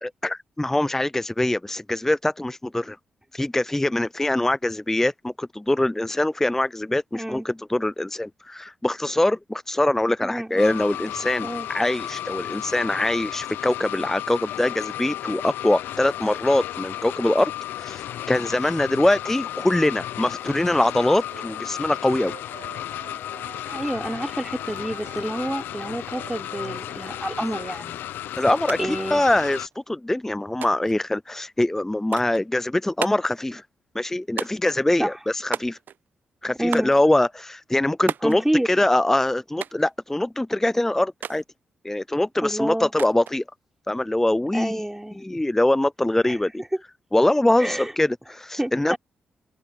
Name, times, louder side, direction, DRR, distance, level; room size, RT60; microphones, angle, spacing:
voice 1, 0.0-3.0 3.3-17.5 17.8-22.3 28.4-33.6 33.9-35.8 36.4-41.4 41.8-43.4 43.9-44.8 45.1-46.6 47.1-48.9, left 1 dB, 10° left, 0.5 m, -23 dB
voice 2, 7.1-7.5 10.2-10.7 11.4-11.7 23.7-28.0 28.8-29.2 35.0-35.1 36.6-36.9 38.2-38.7 42.4-42.9 44.5-45.2 46.2-46.4 47.6-47.9 48.6-49.0, right 1 dB, 10° right, 4.6 m, -28 dB
sound 1, 10.6-29.7, left 12 dB, 75° left, 0.9 m, -34 dB
Wind instrument woodwind instrument, 21.3-27.8, right 19 dB, 90° right, 2.3 m, -47 dB
sound 2, 28.7-28.8 29.1-29.8 30.6-31.0 32.1-32.4 33.0-33.4 34.4-34.8 35.5-36.1 36.7-37.0 38.1-38.4 39.6-39.9 41.2-41.4 43.0-43.4, right 8 dB, 65° right, 0.6 m, -33 dB
hypercardioid pair, 40°, 3 cm